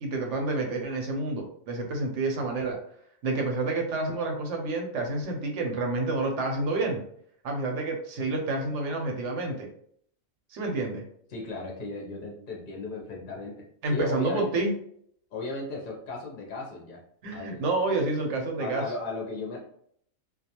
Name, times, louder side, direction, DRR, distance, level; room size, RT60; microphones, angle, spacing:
voice 1, 0.0-2.8 3.2-7.0 7.4-9.7 10.5-11.0 13.8-14.7 17.2-18.8, right 2 dB, 70° right, 2 dB, 0.9 m, -29 dB
voice 2, 11.3-14.6 15.3-17.0 17.3-17.6 18.6-19.6, left 3 dB, 55° left, -1 dB, 0.6 m, -35 dB
2.3 x 2.2 x 2.8 m, 0.64 s
omnidirectional pair, 1.4 m